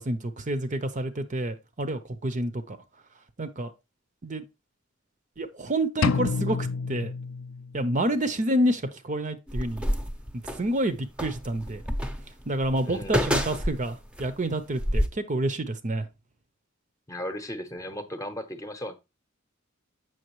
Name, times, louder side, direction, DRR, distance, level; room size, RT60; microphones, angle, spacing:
voice 1, 0.0-2.8 3.4-3.7 4.2-4.4 5.4-7.1 7.7-9.8 10.6-11.8 12.5-16.1, right 1 dB, 40° right, 0.7 m, -28 dB
sound 1, 6.0-8.0, left 5 dB, 75° left, 0.4 m, -29 dB
sound 2, 9.5-10.7 11.2-14.3 14.7-15.1, equal, 5° right, 0.7 m, -28 dB
voice 2, 12.8-13.3 17.1-18.9, left 1 dB, 15° left, 0.9 m, -36 dB
7.8 x 6.1 x 3.1 m
head